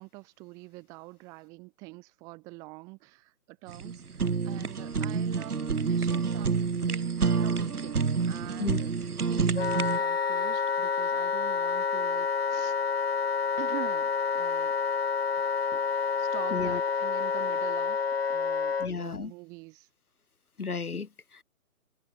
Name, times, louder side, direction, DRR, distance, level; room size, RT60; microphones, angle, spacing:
voice 1, 0.0-8.9 9.3-12.8 13.6-14.7 16.2-19.9, right 26 dB, 10° right, 1.6 m, -45 dB
Fire, 3.7-10.0, right 5 dB, 85° right, 3.7 m, -28 dB
Wind instrument woodwind instrument, 9.6-18.9, left 5 dB, 45° left, 0.5 m, -28 dB
voice 2, 16.5-16.8 18.8-19.3 20.6-21.4, left 5 dB, 80° left, 6.1 m, -33 dB
hypercardioid pair, 175°, 44 cm